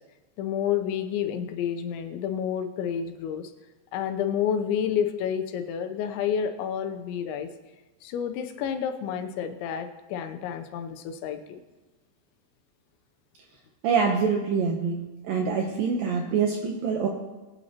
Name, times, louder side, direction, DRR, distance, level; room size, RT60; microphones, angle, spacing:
voice 1, 0.4-3.5 3.9-7.5 8.0-11.6, left 8 dB, 90° left, 7 dB, 3.2 m, -29 dB
voice 2, 13.8-17.1, right 5 dB, 80° right, 1 dB, 2.0 m, -25 dB
21.5 x 9.4 x 2.9 m, 1.2 s
omnidirectional pair, 5.1 m